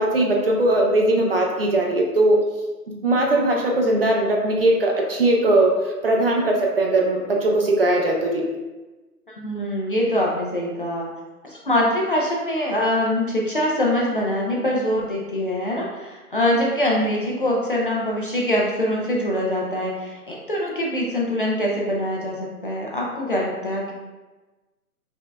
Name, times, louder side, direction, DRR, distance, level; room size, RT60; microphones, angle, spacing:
voice 1, 0.0-2.4 3.0-8.4, right 1 dB, 40° right, -1 dB, 0.5 m, -19 dB
voice 2, 9.3-11.1 11.4-23.9, left 1 dB, 35° left, -3 dB, 0.4 m, -23 dB
5.2 x 2.6 x 2.2 m, 1.2 s
hypercardioid pair, 145°, 47 cm